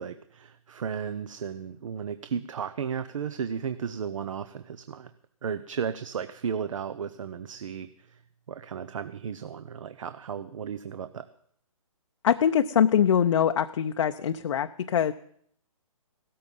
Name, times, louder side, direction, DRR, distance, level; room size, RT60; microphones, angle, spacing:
voice 1, 0.0-5.1 5.4-8.2 8.5-11.3, right 7 dB, 65° right, 12 dB, 0.8 m, -34 dB
voice 2, 12.2-15.1, left 8 dB, 60° left, 7 dB, 0.6 m, -23 dB
17.0 x 13.5 x 5.5 m, 0.66 s
hypercardioid pair, 150°, 18 cm